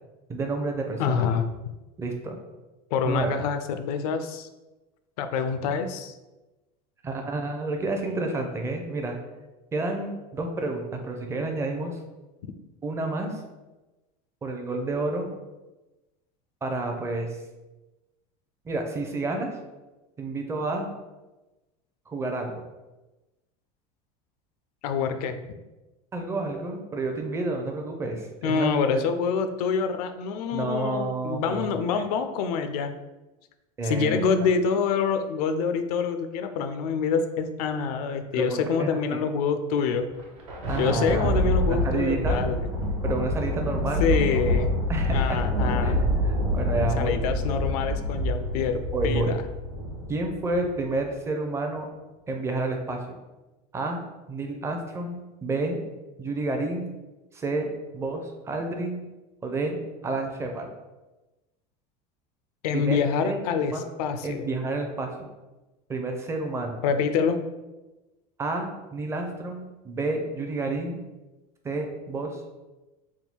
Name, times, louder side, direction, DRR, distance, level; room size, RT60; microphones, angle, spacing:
voice 1, 0.3-1.3 2.0-2.4 3.0-3.3 7.0-9.2 9.7-12.0 12.8-13.4 14.4-15.3 16.6-17.4 18.6-19.6 20.2-20.9 22.1-22.6 26.1-28.7 30.5-31.8 33.8-34.2 38.3-39.2 40.7-42.4 43.0-44.2 44.9-45.4 45.8-45.9 46.2-47.4 48.9-49.3 50.1-51.9 52.3-53.1 53.7-54.0 54.3-55.8 56.2-56.9 57.3-59.0 59.4-59.8 60.0-60.7 62.7-63.0 63.2-63.4 63.7-63.8 64.2-65.1 65.9-66.8 68.4-71.0 71.6-72.4, right 2 dB, 15° right, 3 dB, 0.5 m, -30 dB
voice 2, 1.0-1.4 2.9-4.5 5.2-6.2 24.8-25.4 28.4-32.9 33.8-40.1 40.8-42.6 44.0-44.7 45.1-46.0 46.9-49.4 62.6-64.5 66.8-67.4, left 6 dB, 85° left, 9 dB, 0.5 m, -26 dB
Thunder, 40.1-50.8, left 1 dB, 80° right, 1.2 m, -26 dB
3.6 x 2.3 x 4.3 m, 1.1 s
supercardioid pair, 150°, 19 cm